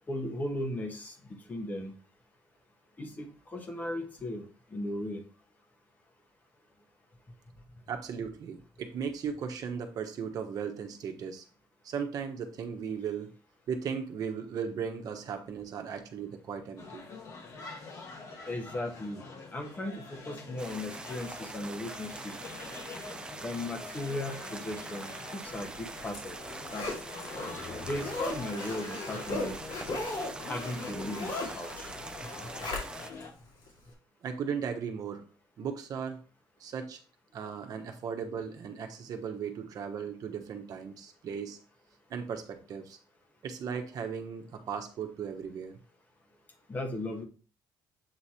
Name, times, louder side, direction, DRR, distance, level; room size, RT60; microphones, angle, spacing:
voice 1, 0.1-1.9 3.0-4.5 4.7-5.2 18.5-19.2 19.5-22.3 23.4-26.4 26.7-26.9 27.2-27.3 27.9-29.6 30.5-31.9 32.4-32.5 46.7-47.2, left 1 dB, 25° left, 3 dB, 1.3 m, -37 dB
voice 2, 7.9-11.4 11.8-13.3 13.7-17.0 34.2-35.2 35.6-36.2 36.6-37.0 37.3-41.6 42.1-43.0 43.4-45.8, right 6 dB, 55° right, 5 dB, 1.2 m, -37 dB
sound 1, 16.8-33.3, left 4 dB, 45° left, 1.3 m, -46 dB
sound 2, 20.6-33.1, right 3 dB, 10° right, 0.4 m, -44 dB
Zipper (clothing), 25.6-33.2 33.7-33.8, left 2 dB, 70° left, 2.4 m, -38 dB
7.9 x 3.2 x 4.3 m, 0.38 s
cardioid pair, 160°, 8 cm